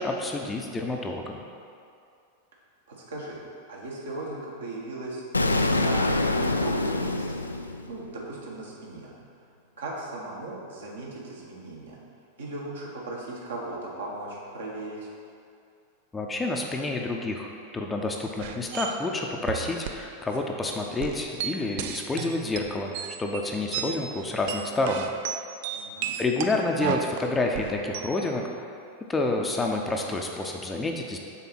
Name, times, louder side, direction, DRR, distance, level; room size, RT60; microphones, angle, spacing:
voice 1, 0.0-1.4 16.1-25.0 26.2-28.4 29.1-31.2, left 2 dB, 15° left, 1 dB, 0.6 m, -29 dB
voice 2, 2.9-3.4 3.7-5.2 5.6-7.4 7.9-9.1 9.8-12.0 12.4-15.1 25.7-26.1, right 2 dB, 65° right, -4 dB, 1.5 m, -37 dB
Explosion, 5.3-8.3, left 2 dB, 80° left, 0.3 m, -25 dB
sound 1, 18.4-18.9 19.5-20.0 20.3-20.4 20.7-24.0 24.3-28.2, right 9 dB, 50° right, 0.4 m, -33 dB
6.8 x 4.2 x 5.9 m, 2.4 s
figure-of-eight pair, 90°, 0 cm